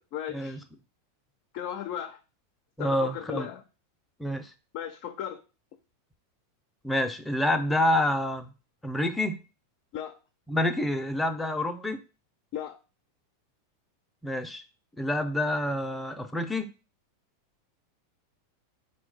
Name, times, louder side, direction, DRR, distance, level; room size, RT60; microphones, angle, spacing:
voice 1, 0.1-0.6 1.5-2.2 2.8-3.6 4.7-5.4 9.9-10.2 12.5-12.8, left 10 dB, 55° left, 6 dB, 0.4 m, -36 dB
voice 2, 2.8-3.5 4.2-4.5 6.8-8.5 8.8-9.4 10.5-12.0 14.2-14.6 15.0-16.7, left 1 dB, 5° left, 6 dB, 0.6 m, -27 dB
4.2 x 2.2 x 3.9 m, 0.33 s
hypercardioid pair, 100°, 0 cm